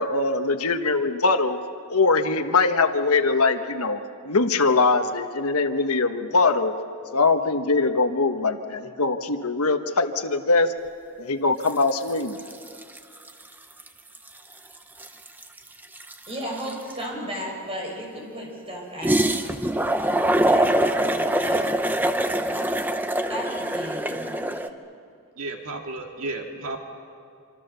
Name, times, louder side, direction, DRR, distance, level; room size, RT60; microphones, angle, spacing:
voice 1, 0.0-1.6 1.9-6.7 7.1-10.7 11.2-12.4, left 3 dB, 80° left, 7 dB, 1.3 m, -22 dB
sound 1, 11.7-11.9 12.2-13.4 13.8-13.9 14.1-17.0 19.0-24.7, right 1 dB, 10° right, 0.7 m, -24 dB
voice 2, 16.3-19.2 20.5-21.6 23.3-24.7, equal, 25° right, -1 dB, 6.3 m, -35 dB
voice 3, 25.4-26.8, right 2 dB, 70° right, 2 dB, 2.1 m, -33 dB
26.5 x 26.0 x 6.9 m, 2.5 s
head